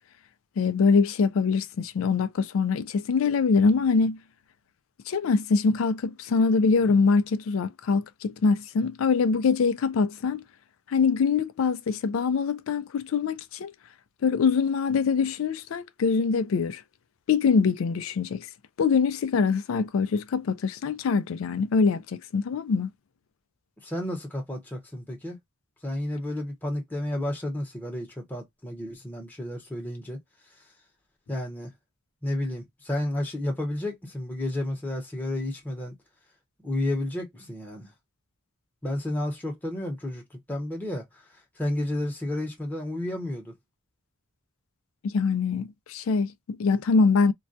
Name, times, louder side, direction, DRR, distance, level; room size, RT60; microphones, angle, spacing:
voice 1, 0.6-4.2 5.1-10.4 10.9-13.7 14.2-16.8 17.3-18.5 18.8-22.9 45.0-47.3, left 5 dB, 70° left, 0.4 m, -24 dB
voice 2, 23.8-25.4 25.8-30.2 31.3-31.7 32.2-35.9 36.6-37.9 38.8-41.2 41.6-43.5, left 1 dB, 10° left, 0.8 m, -31 dB
2.3 x 2.2 x 2.5 m
head